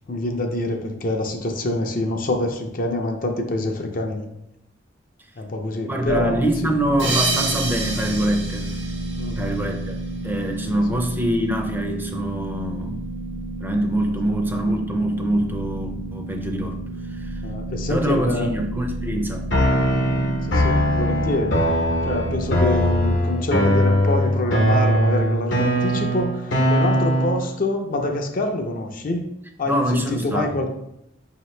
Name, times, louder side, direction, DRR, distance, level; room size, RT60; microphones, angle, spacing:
voice 1, 0.1-4.2 5.4-6.4 9.2-9.4 10.9-11.0 17.4-18.5 20.5-21.6 22.1-29.3 29.6-30.7, left 2 dB, 45° left, 3 dB, 0.5 m, -26 dB
voice 2, 5.9-8.8 9.4-10.0 10.2-13.1 13.6-16.8 17.1-17.4 17.9-19.4 29.6-30.6, right 1 dB, 10° right, 3 dB, 0.4 m, -24 dB
sound 1, 6.0-23.2, right 1 dB, 60° right, 0.5 m, -31 dB
sound 2, 7.0-10.1, right 3 dB, 80° right, 1.1 m, -28 dB
sound 3, 19.5-27.5, equal, 70° left, 0.8 m, -20 dB
5.0 x 2.8 x 3.2 m, 0.82 s
head